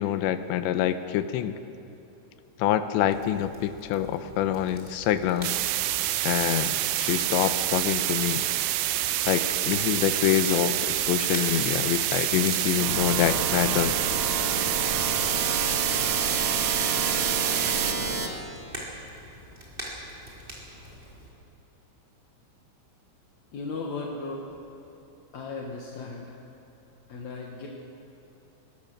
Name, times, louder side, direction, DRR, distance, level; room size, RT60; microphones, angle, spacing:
voice 1, 0.0-1.6 2.6-5.5 6.2-8.4 9.3-14.0, left 11 dB, 80° left, 10 dB, 3.0 m, -26 dB
Crackle, 3.1-21.3, equal, 10° right, 3.3 m, -45 dB
sound 1, 5.4-17.9, right 14 dB, 80° right, 2.4 m, -27 dB
sound 2, 12.8-18.3, right 3 dB, 50° right, 2.4 m, -30 dB
voice 2, 23.5-24.5 25.3-26.3 27.1-27.7, left 3 dB, 60° left, -1 dB, 2.0 m, -36 dB
22.5 x 21.0 x 6.6 m, 2.8 s
omnidirectional pair, 5.4 m